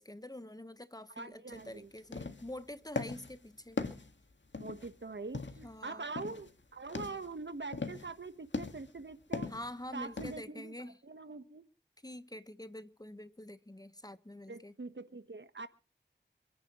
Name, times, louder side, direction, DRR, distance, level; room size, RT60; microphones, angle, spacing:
voice 1, 0.0-3.8 5.6-6.0 9.5-11.0 12.0-14.7, left 1 dB, 20° left, 1.3 m, -46 dB
voice 2, 1.2-1.9 4.6-9.5 9.9-10.7 11.0-11.6 14.5-15.7, right 3 dB, 75° right, 1.4 m, -44 dB
sound 1, 1.5-1.7 2.0-2.6 3.0-3.4 3.8-4.9 5.3-5.7 6.2-6.5 6.8-7.3 7.7-8.1 8.5-9.0 9.3-9.7 10.2-10.4, left 3 dB, 80° left, 1.9 m, -39 dB
27.5 x 10.5 x 3.1 m
wide cardioid pair, 50°, 19 cm